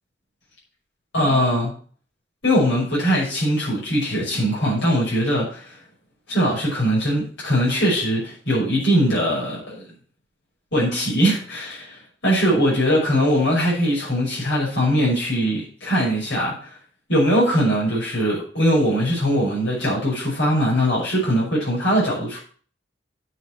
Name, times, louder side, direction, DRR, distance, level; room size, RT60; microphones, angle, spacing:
voice 1, 1.1-1.7 2.4-5.8 6.3-9.8 10.7-16.7 17.1-22.4, equal, 85° left, -6 dB, 6.0 m, -21 dB
9.0 x 6.2 x 7.6 m, 0.43 s
head